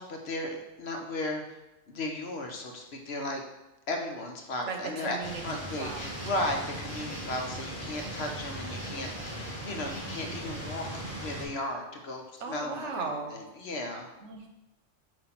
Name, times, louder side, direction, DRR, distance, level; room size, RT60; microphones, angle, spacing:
voice 1, 0.0-1.6 1.9-3.4 3.9-5.2 5.4-14.1, left 1 dB, 60° left, 3 dB, 1.1 m, -35 dB
voice 2, 4.7-6.2 9.8-10.4 12.4-13.4 14.2-14.5, right 4 dB, 75° right, 3 dB, 1.2 m, -38 dB
sound 1, 5.2-11.4, right 1 dB, 10° right, 2.3 m, -38 dB
7.6 x 2.9 x 5.9 m, 0.97 s
omnidirectional pair, 1.3 m